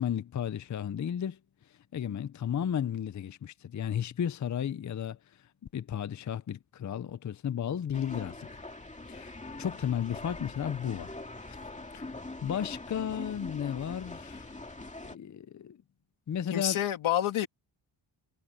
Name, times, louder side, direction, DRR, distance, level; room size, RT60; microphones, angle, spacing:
voice 1, 0.0-1.4 1.7-5.2 5.7-8.6 9.1-11.6 11.9-14.6 15.0-15.8 16.3-16.8, left 9 dB, 40° left, 0.6 m, -34 dB
sound 1, 7.9-15.2, left 2 dB, 15° left, 2.4 m, -43 dB
voice 2, 16.5-17.5, left 11 dB, 85° left, 2.4 m, -28 dB
wide cardioid pair, 120°, 47 cm